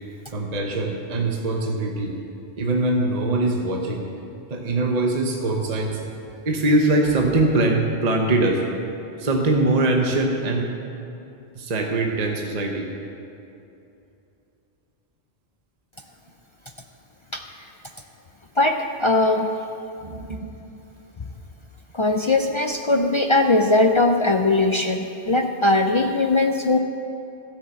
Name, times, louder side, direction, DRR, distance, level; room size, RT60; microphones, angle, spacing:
voice 1, 0.3-2.2 2.6-4.1 4.5-6.0 6.4-8.6 9.2-10.7 11.5-12.9 20.0-20.5, right 2 dB, 40° right, 1 dB, 1.0 m, -22 dB
voice 2, 18.6-19.5 21.9-26.8, left 2 dB, 50° left, 4 dB, 0.3 m, -20 dB
13.0 x 6.6 x 7.6 m, 2.8 s
omnidirectional pair, 1.2 m